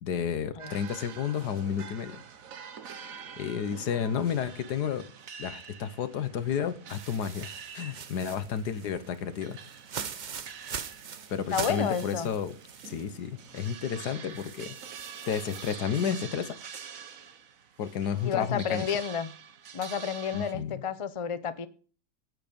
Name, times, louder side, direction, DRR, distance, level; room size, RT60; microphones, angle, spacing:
voice 1, 0.0-2.2 3.4-5.1 5.4-9.6 11.3-12.6 12.8-14.8 15.3-16.6 17.8-18.9 20.3-20.8, left 7 dB, 80° left, 12 dB, 1.6 m, -31 dB
sound 1, 0.6-20.5, right 7 dB, 60° right, 1.4 m, -46 dB
sound 2, 6.9-13.1 13.5-13.6 14.3-15.7, right 7 dB, 75° right, 0.4 m, -42 dB
voice 2, 11.5-12.3 18.2-19.3 19.7-21.7, left 7 dB, 40° left, 12 dB, 0.4 m, -31 dB
11.0 x 9.2 x 5.2 m, 0.40 s
omnidirectional pair, 1.7 m